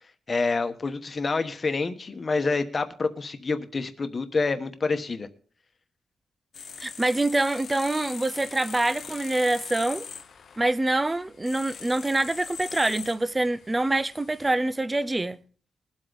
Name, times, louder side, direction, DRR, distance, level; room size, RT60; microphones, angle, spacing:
voice 1, 0.3-5.3, left 3 dB, 30° left, 1.1 m, -27 dB
sound 1, 6.5-14.5, left 6 dB, 50° left, 0.9 m, -42 dB
voice 2, 6.8-10.1 10.6-15.4, right 2 dB, 15° right, 0.5 m, -25 dB
21.0 x 8.0 x 4.0 m
wide cardioid pair, 170°, 0 cm